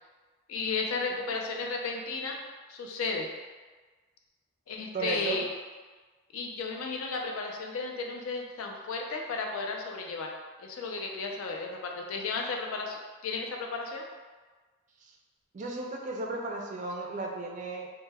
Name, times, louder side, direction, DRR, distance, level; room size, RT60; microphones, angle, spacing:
voice 1, 0.5-2.4 2.7-3.3 4.7-5.5 6.3-10.3 10.6-14.1, left 4 dB, 80° left, 1 dB, 0.4 m, -34 dB
voice 2, 4.9-5.4 15.0-15.1 15.5-17.9, right 3 dB, 35° right, 0 dB, 0.3 m, -35 dB
2.1 x 2.1 x 3.3 m, 1.4 s
head